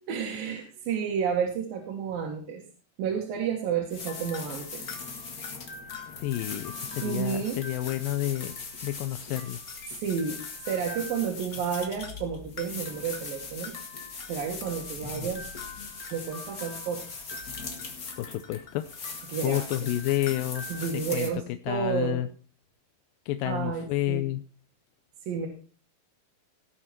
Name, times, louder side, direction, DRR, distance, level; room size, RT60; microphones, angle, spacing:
voice 1, 0.0-2.6 3.0-4.8 7.0-7.6 10.0-10.4 10.7-13.8 14.3-15.5 16.1-17.2 19.3-19.9 20.7-22.2 23.4-24.3 25.2-25.5, right 7 dB, 80° right, 0 dB, 3.4 m, -31 dB
sound 1, 3.9-21.3, left 4 dB, 35° left, 1.6 m, -39 dB
voice 2, 6.1-8.6 8.8-9.6 18.2-18.9 19.4-20.6 21.1-21.3 21.7-22.3 23.3-24.4, left 14 dB, 85° left, 9 dB, 2.4 m, -29 dB
18.0 x 6.8 x 4.3 m, 0.39 s
omnidirectional pair, 4.0 m